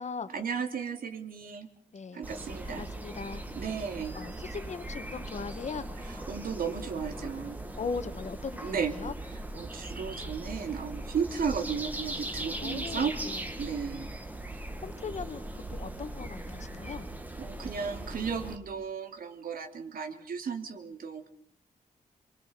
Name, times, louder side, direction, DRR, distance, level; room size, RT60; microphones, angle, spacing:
voice 1, 0.3-1.7 2.1-2.9 3.5-4.1 6.0-7.6 8.6-9.0 9.5-13.2 13.6-14.1 17.4-21.3, right 6 dB, 80° right, 5 dB, 3.0 m, -34 dB
voice 2, 1.9-2.2 2.6-3.4 4.1-5.9 7.8-9.1 12.6-13.4 14.8-15.4 15.7-17.1, left 5 dB, 50° left, 11 dB, 1.7 m, -39 dB
sound 1, 2.2-18.6, right 1 dB, 10° right, 2.1 m, -39 dB
26.5 x 24.0 x 6.9 m, 0.64 s
wide cardioid pair, 155°, 15 cm